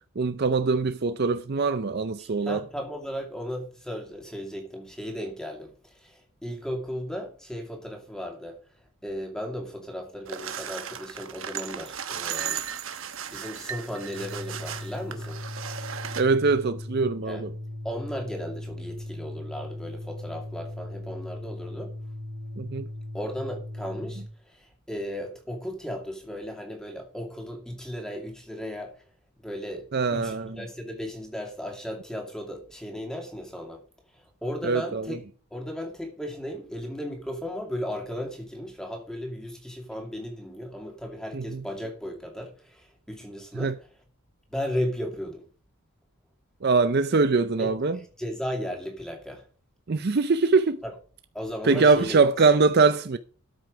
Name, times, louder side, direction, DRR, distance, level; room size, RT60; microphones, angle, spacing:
voice 1, 0.2-2.6 16.2-17.5 22.6-22.9 29.9-30.6 34.6-35.2 41.3-41.6 43.5-43.7 46.6-48.0 49.9-50.8 51.6-53.2, right 4 dB, 45° right, 0.5 m, -23 dB
voice 2, 2.2-8.6 9.0-12.6 13.3-15.4 15.8-15.9 17.3-17.4 17.8-21.9 23.1-29.0 29.4-29.8 30.1-33.8 34.1-35.2 35.5-43.7 44.5-45.4 47.6-49.5 50.8-50.9 51.3-52.2, equal, 5° left, 2.3 m, -35 dB
sound 1, 10.3-16.2, right 8 dB, 60° right, 1.1 m, -36 dB
Organ, 14.0-24.3, left 1 dB, 20° left, 3.3 m, -38 dB
13.0 x 6.3 x 5.0 m
head